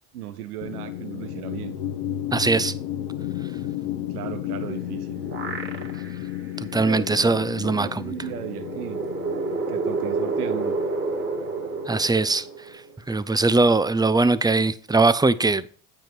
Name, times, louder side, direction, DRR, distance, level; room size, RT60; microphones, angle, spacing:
voice 1, 0.1-1.8 4.1-5.2 6.8-9.0 9.7-10.8, right 10 dB, 90° right, 0.7 m, -35 dB
sound 1, 0.6-12.7, left 11 dB, 80° left, 1.0 m, -34 dB
voice 2, 2.3-2.7 6.6-8.0 11.9-12.5 13.1-15.8, right 3 dB, 10° right, 0.5 m, -21 dB
sound 2, 4.7-6.3 6.7-6.8 8.1-12.9, right 3 dB, 25° right, 2.1 m, -29 dB
9.1 x 5.4 x 4.5 m
hypercardioid pair, 60°, 44 cm